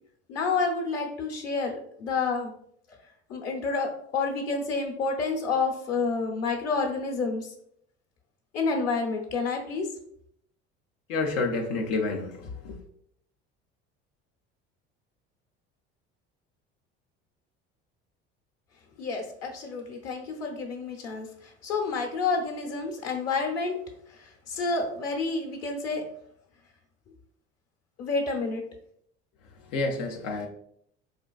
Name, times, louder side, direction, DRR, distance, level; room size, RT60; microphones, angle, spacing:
voice 1, 0.3-2.5 3.3-7.5 8.5-9.9 19.0-23.8 24.1-26.0 28.0-28.6, left 4 dB, 55° left, 1 dB, 0.9 m, -29 dB
voice 2, 11.1-12.8 29.7-30.5, left 3 dB, 85° left, 2 dB, 0.6 m, -29 dB
4.3 x 2.5 x 2.3 m, 0.69 s
supercardioid pair, 85°, 30 cm